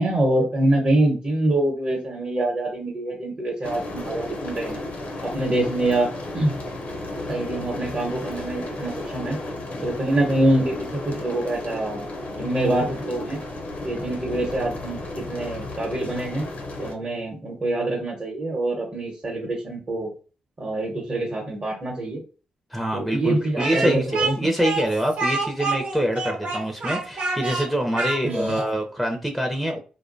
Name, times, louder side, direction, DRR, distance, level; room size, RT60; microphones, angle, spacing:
voice 1, 0.0-4.8 5.2-6.1 6.3-6.5 7.3-9.4 9.8-12.1 12.4-13.4 13.8-16.4 16.8-20.1 20.6-22.2 22.9-24.5 28.2-28.6, right 1 dB, 40° right, -1 dB, 0.9 m, -25 dB
sound 1, 3.6-16.9, left 2 dB, 60° left, 0.6 m, -33 dB
voice 2, 22.7-29.8, equal, 5° right, 2 dB, 0.5 m, -25 dB
Speech, 23.6-28.7, right 3 dB, 65° right, 0.9 m, -27 dB
2.4 x 2.1 x 2.5 m, 0.37 s
supercardioid pair, 50°, 3 cm